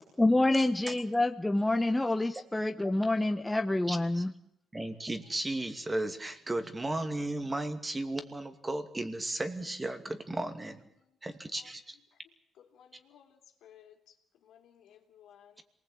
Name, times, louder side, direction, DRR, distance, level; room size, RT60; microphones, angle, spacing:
voice 1, 0.2-4.3, left 2 dB, 10° left, 1.2 m, -27 dB
voice 2, 3.9-4.2 4.7-10.8 11.2-12.0, right 2 dB, 20° right, 2.5 m, -35 dB
voice 3, 12.6-14.1 14.4-15.6, left 9 dB, 80° left, 3.3 m, -58 dB
26.5 x 20.0 x 8.8 m
cardioid pair, 90°, 0 cm